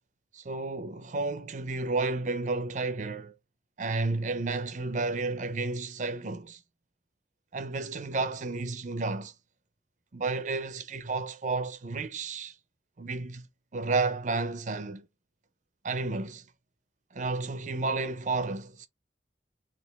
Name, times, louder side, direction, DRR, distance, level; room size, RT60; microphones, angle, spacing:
voice 1, 0.3-3.3 3.8-6.6 7.5-9.3 10.1-12.6 13.0-13.5 13.7-15.1 15.8-16.4 17.1-18.9, right 3 dB, 45° right, 0.5 m, -31 dB
4.2 x 2.4 x 3.4 m
head